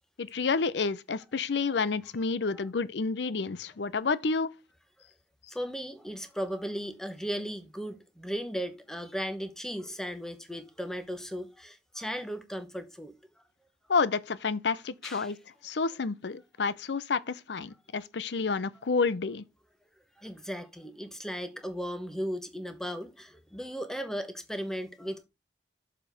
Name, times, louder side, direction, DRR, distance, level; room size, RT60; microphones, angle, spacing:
voice 1, 0.2-4.5 13.9-15.4 15.6-19.4, left 4 dB, 70° left, 0.6 m, -29 dB
voice 2, 5.5-13.1 15.0-15.3 20.2-25.2, equal, 5° left, 1.0 m, -36 dB
7.1 x 5.0 x 5.0 m
head